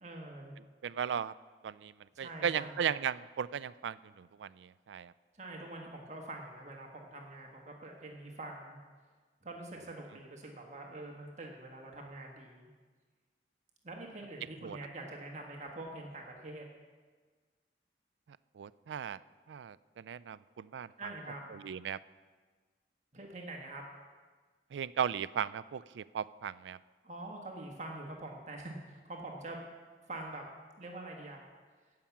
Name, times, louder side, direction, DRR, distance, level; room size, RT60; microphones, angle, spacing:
voice 1, 0.0-0.5 2.1-2.9 5.3-8.8 9.4-12.7 13.8-16.6 21.0-21.5 23.1-23.8 27.0-29.6 30.1-30.4 30.8-31.4, right 2 dB, 40° right, 0 dB, 1.4 m, -45 dB
voice 2, 0.8-1.3 1.6-1.9 2.2-5.1 14.6-14.8 18.6-19.2 19.5-20.9 21.5-22.0 24.7-26.8, right 8 dB, 90° right, 17 dB, 0.4 m, -36 dB
16.0 x 5.8 x 7.2 m, 1.4 s
head